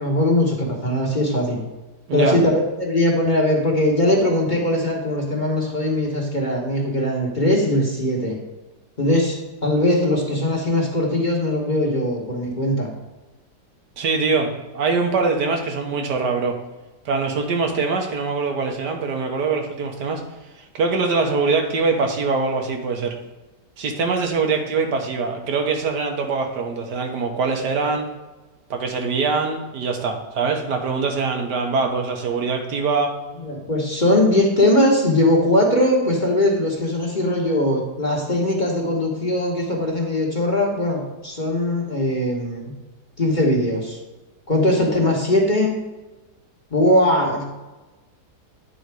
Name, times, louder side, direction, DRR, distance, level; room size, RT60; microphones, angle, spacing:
voice 1, 0.0-1.6 2.1-8.4 9.0-12.9 33.4-42.7 43.2-44.0 44.5-45.8 46.7-47.5, left 1 dB, 30° left, -2 dB, 1.2 m, -20 dB
voice 2, 14.0-16.6 17.0-20.2 20.7-23.1 23.8-28.0 28.7-33.2, right 4 dB, 75° right, 3 dB, 1.6 m, -23 dB
9.3 x 3.9 x 4.7 m, 1.1 s
omnidirectional pair, 1.8 m